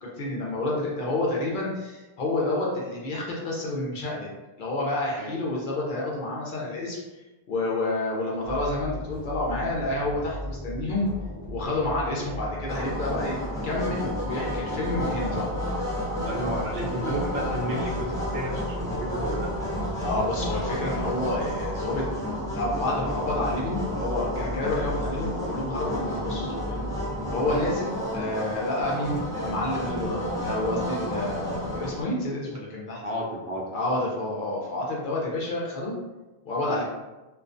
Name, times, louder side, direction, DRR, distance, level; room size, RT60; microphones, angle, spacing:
voice 1, 0.0-4.3 4.6-7.0 7.5-11.1 11.5-15.5 20.0-22.0 22.5-26.8 27.3-33.0 33.7-36.0 36.5-36.8, left 2 dB, 60° left, -4 dB, 0.6 m, -29 dB
sound 1, 8.4-27.7, equal, 35° left, 1.0 m, -36 dB
sound 2, 12.7-32.0, equal, 5° left, 0.4 m, -32 dB
voice 2, 16.1-19.5 33.0-33.7, right 1 dB, 70° right, -3 dB, 0.8 m, -32 dB
2.3 x 2.2 x 2.5 m, 1.1 s
omnidirectional pair, 1.1 m